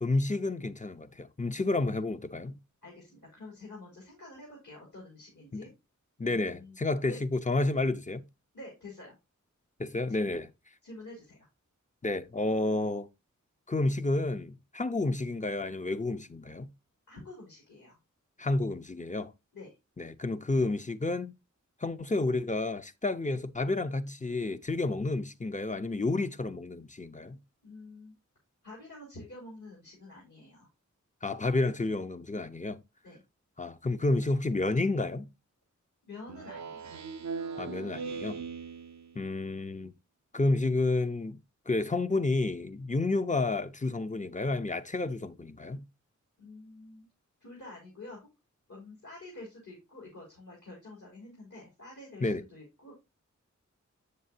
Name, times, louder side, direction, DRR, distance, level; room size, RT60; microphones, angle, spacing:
voice 1, 0.0-2.6 5.5-5.7 6.2-8.2 9.8-10.5 12.0-13.1 13.7-16.7 18.4-19.3 20.0-21.3 21.8-27.4 31.2-32.8 33.6-35.3 37.6-38.4 39.1-39.9 40.3-41.4 41.7-45.8 52.2-52.4, left 2 dB, 25° left, 0.6 m, -30 dB
voice 2, 2.8-5.7 6.2-6.8 7.1-7.2 8.5-9.2 10.1-10.2 10.8-11.5 17.1-18.0 19.5-19.7 27.6-28.1 28.6-30.7 33.0-33.2 36.1-37.0 46.4-47.0 47.4-48.3 48.7-52.9, left 2 dB, 70° left, 3.8 m, -48 dB
Speech synthesizer, 36.3-39.3, right 5 dB, 65° right, 0.5 m, -39 dB
7.3 x 6.7 x 2.7 m
wide cardioid pair, 45°, 31 cm